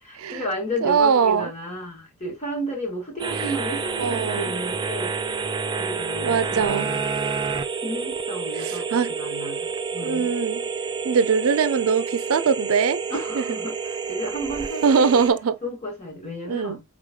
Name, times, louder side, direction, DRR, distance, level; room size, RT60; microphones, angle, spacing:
voice 1, 0.1-5.1 5.8-7.1 7.8-10.3 13.1-15.1 15.6-16.8, equal, 35° left, 2.1 m, -32 dB
voice 2, 0.8-1.5 3.3-3.5 4.0-4.5 6.2-6.9 8.6-9.1 10.0-10.6 11.0-13.0 13.4-13.5 14.8-15.6 16.5-16.8, right 6 dB, 80° right, 0.4 m, -22 dB
sound 1, 3.2-15.3, right 5 dB, 20° right, 0.5 m, -29 dB
5.0 x 3.8 x 2.2 m
head